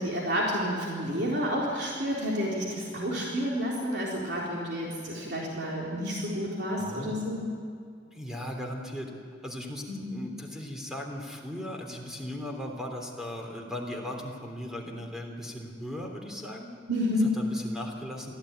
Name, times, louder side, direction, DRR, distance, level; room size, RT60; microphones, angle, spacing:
voice 1, 0.0-7.4 9.9-10.2 16.9-17.3, equal, 65° right, -4 dB, 3.9 m, -30 dB
voice 2, 6.8-7.1 8.1-9.1 9.4-16.7 17.2-18.3, left 1 dB, 5° right, 1 dB, 3.3 m, -38 dB
23.5 x 15.5 x 9.2 m, 2.2 s
head